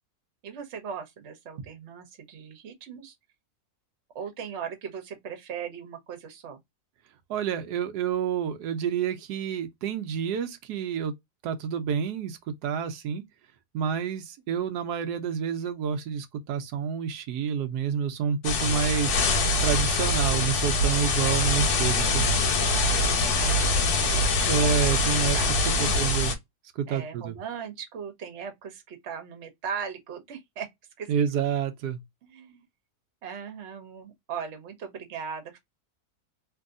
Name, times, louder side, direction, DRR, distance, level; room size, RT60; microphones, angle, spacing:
voice 1, 0.4-3.1 4.1-6.6 22.9-24.7 25.3-25.5 25.7-26.1 26.9-30.7 31.0-31.1 32.3-32.6 33.2-35.6, right 7 dB, 50° right, 1.1 m, -38 dB
voice 2, 7.3-11.1 11.4-13.2 13.7-19.1 19.6-22.4 24.4-25.4 25.8-26.3 26.8-27.4 31.1-32.0, right 7 dB, 85° right, 1.1 m, -29 dB
sound 1, 18.4-26.4, left 2 dB, 85° left, 1.4 m, -24 dB
3.0 x 2.6 x 2.4 m
omnidirectional pair, 1.7 m